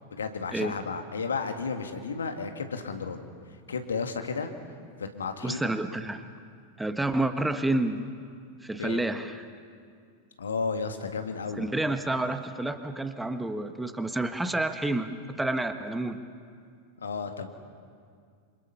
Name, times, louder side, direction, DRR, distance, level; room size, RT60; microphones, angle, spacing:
voice 1, 0.1-3.3 3.7-4.5 5.0-5.6 8.8-9.0 10.4-11.7 17.0-17.5, left 5 dB, 70° left, 6 dB, 2.0 m, -33 dB
voice 2, 5.4-6.3 6.8-8.0 8.6-9.5 11.6-15.1 15.4-16.2, right 2 dB, 5° right, 9 dB, 1.2 m, -29 dB
27.5 x 26.5 x 5.7 m, 2.2 s
figure-of-eight pair, 90°, 0 cm